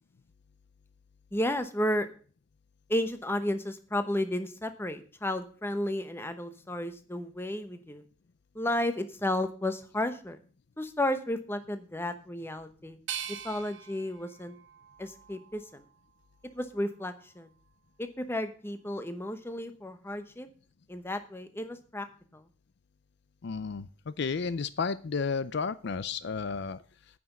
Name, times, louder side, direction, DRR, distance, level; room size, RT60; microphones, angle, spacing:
voice 1, 1.3-2.1 2.9-8.0 8.5-10.4 10.8-13.0 13.3-14.6 15.0-15.8 16.5-17.5 18.0-20.5 20.9-22.0 22.3-22.4, left 1 dB, 10° left, 9 dB, 0.9 m, -33 dB
sound 1, 13.1-16.0 16.5-17.4, right 9 dB, 60° right, 0.9 m, -43 dB
voice 2, 23.4-26.8, left 5 dB, 55° left, 15 dB, 0.5 m, -32 dB
9.2 x 6.0 x 8.3 m, 0.41 s
head